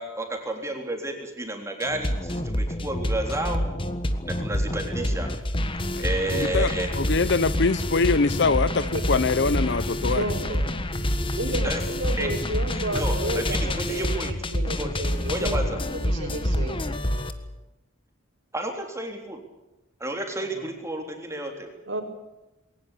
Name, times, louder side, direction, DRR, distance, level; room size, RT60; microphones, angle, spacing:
voice 1, 0.0-3.6 4.3-5.3 6.0-6.9 11.6-11.8 12.2-12.3 12.9-13.1 13.5-14.3 14.8-14.9 15.2-15.8 18.5-19.4 20.0-21.7, right 1 dB, 15° right, 3 dB, 3.6 m, -31 dB
sound 1, 1.8-17.3, left 1 dB, 25° left, 1.5 m, -27 dB
voice 2, 6.0-10.2, left 4 dB, 55° left, 16 dB, 0.8 m, -24 dB
voice 3, 10.0-10.7 11.4-16.8 20.3-20.7 21.9-22.0, right 1 dB, 65° right, 2 dB, 4.8 m, -32 dB
21.5 x 19.0 x 8.6 m, 0.99 s
head